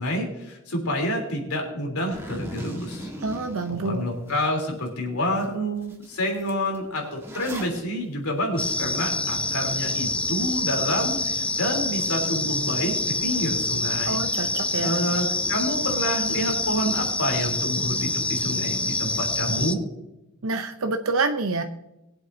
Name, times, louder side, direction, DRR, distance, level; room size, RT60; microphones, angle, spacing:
voice 1, 0.0-3.1 3.7-14.2 14.8-19.8, equal, 80° left, 1 dB, 3.6 m, -28 dB
Zipper (clothing), 2.1-4.3 4.8-4.9 5.4-5.5 5.8-7.8, right 1 dB, 10° right, 1.6 m, -39 dB
voice 2, 3.2-4.0 14.1-14.9 20.4-21.6, right 3 dB, 75° right, 6 dB, 0.8 m, -27 dB
sound 1, 8.6-19.8, left 2 dB, 5° left, 0.3 m, -26 dB
22.0 x 7.9 x 2.8 m, 0.90 s
head